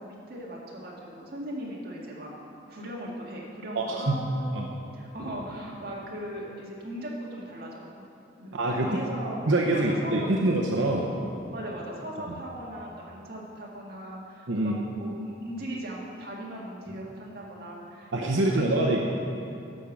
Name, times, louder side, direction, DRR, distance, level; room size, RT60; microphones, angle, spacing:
voice 1, 0.0-2.3 2.7-4.7 4.9-8.0 8.4-9.4 9.7-10.3 11.5-19.0, right 1 dB, 55° right, -4 dB, 2.0 m, -38 dB
voice 2, 3.7-4.1 4.5-4.7 8.5-9.0 9.5-11.1 12.3-12.4 14.5-14.8 18.1-19.0, right 2 dB, 90° right, -1 dB, 0.8 m, -25 dB
11.5 x 5.4 x 7.3 m, 2.7 s
head